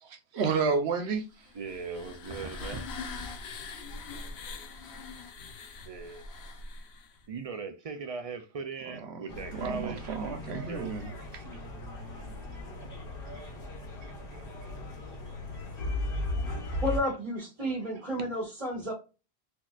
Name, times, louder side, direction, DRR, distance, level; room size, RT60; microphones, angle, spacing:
voice 1, 0.0-1.2 8.9-11.4 14.0-14.1 16.8-16.9, right 5 dB, 85° right, 1.1 m, -32 dB
sound 1, 1.4-7.2, left 4 dB, 85° left, 1.0 m, -42 dB
voice 2, 1.5-2.9 5.8-6.3 7.3-10.0 10.7-11.0, right 4 dB, 55° right, 0.4 m, -39 dB
sound 2, 9.3-17.0, left 2 dB, 60° left, 1.3 m, -37 dB
voice 3, 16.8-18.9, equal, 35° right, 1.3 m, -31 dB
4.1 x 2.9 x 2.3 m
omnidirectional pair, 1.1 m